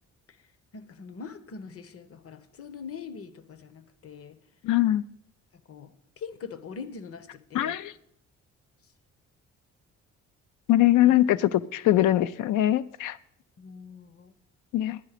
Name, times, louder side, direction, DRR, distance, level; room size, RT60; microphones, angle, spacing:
voice 1, 0.7-4.4 5.7-7.8 11.0-11.2 13.6-14.3, left 6 dB, 50° left, 13 dB, 0.9 m, -42 dB
voice 2, 4.6-5.0 7.5-7.9 10.7-13.2 14.7-15.0, left 14 dB, 85° left, 16 dB, 0.5 m, -22 dB
10.5 x 10.0 x 4.9 m, 0.73 s
cardioid pair, 90°, 30 cm